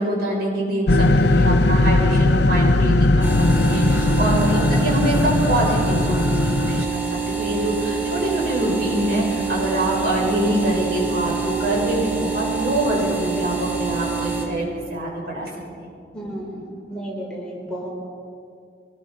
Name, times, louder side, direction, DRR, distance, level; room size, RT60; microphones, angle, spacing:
voice 1, 0.0-3.3 3.5-15.5, right 1 dB, 60° right, -4 dB, 7.6 m, -24 dB
sound 1, 0.9-6.8, left 2 dB, 70° left, 0.6 m, -18 dB
sound 2, 3.2-14.5, right 5 dB, 10° right, 3.6 m, -27 dB
voice 2, 16.1-17.9, equal, 5° left, -4 dB, 4.1 m, -33 dB
23.0 x 21.0 x 5.6 m, 2.3 s
head